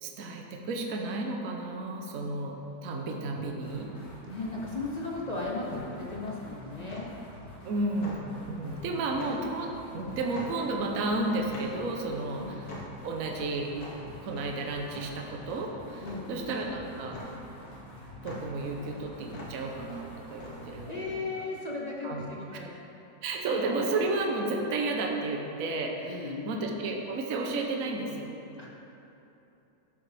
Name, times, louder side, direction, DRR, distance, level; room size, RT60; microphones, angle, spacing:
voice 1, 0.0-2.5 2.8-3.9 7.6-8.2 8.5-12.7 13.0-13.7 14.2-17.2 18.2-21.2 22.0-22.3 22.5-22.6 23.2-28.3, right 2 dB, 60° right, 1 dB, 1.2 m, -32 dB
sound 1, 2.4-21.0, left 1 dB, 80° left, 1.9 m, -46 dB
sound 2, 3.6-21.0, left 2 dB, 60° left, 2.1 m, -48 dB
voice 2, 4.2-7.1 12.3-12.6 16.0-16.5 20.9-22.8 26.1-26.5 28.6-28.7, left 3 dB, 40° left, -4 dB, 0.6 m, -36 dB
12.0 x 7.7 x 3.4 m, 2.9 s
omnidirectional pair, 1.9 m